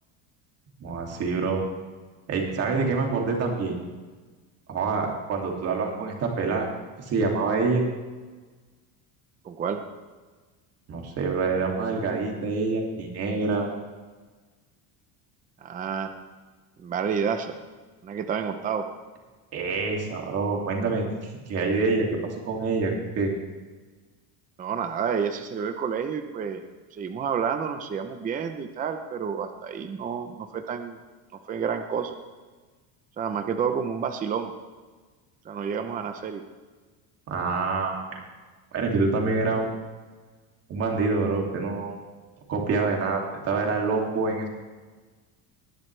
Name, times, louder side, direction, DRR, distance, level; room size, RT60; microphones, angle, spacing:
voice 1, 0.8-1.6 2.3-3.7 4.7-6.7 7.0-7.8 10.9-13.7 19.5-23.3 37.3-38.0 38.7-39.7 40.7-42.0 42.5-44.5, right 4 dB, 35° right, 0 dB, 2.6 m, -26 dB
voice 2, 9.4-9.8 15.6-16.1 16.8-17.6 18.0-18.9 24.6-26.6 26.9-31.0 31.5-32.2 33.2-34.5 35.4-36.4, right 7 dB, 20° right, 7 dB, 0.7 m, -29 dB
19.5 x 12.0 x 3.3 m, 1.3 s
cardioid pair, 170°, 42 cm